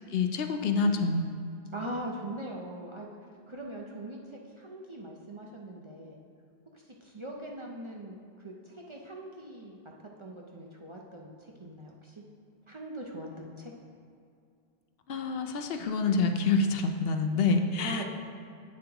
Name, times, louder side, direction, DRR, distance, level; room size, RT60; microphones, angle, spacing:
voice 1, 0.1-1.3 15.1-18.0, left 4 dB, 70° left, 6 dB, 0.8 m, -27 dB
voice 2, 1.7-3.1 3.5-6.2 7.0-9.8 10.2-12.2 12.7-13.7 17.8-18.0, right 1 dB, 35° right, -1 dB, 0.5 m, -41 dB
8.5 x 7.2 x 2.9 m, 2.4 s
omnidirectional pair, 1.1 m